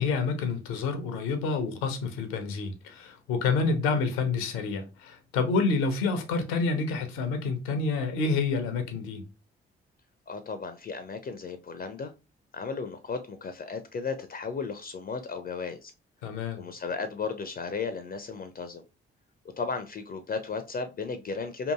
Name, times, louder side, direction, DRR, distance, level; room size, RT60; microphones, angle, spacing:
voice 1, 0.0-9.2 16.2-16.6, left 4 dB, 80° left, 0.6 m, -28 dB
voice 2, 10.3-12.1 12.5-15.9 16.5-18.8 19.6-21.7, left 5 dB, 30° left, 0.4 m, -34 dB
2.8 x 2.5 x 2.2 m
hypercardioid pair, 40°, 29 cm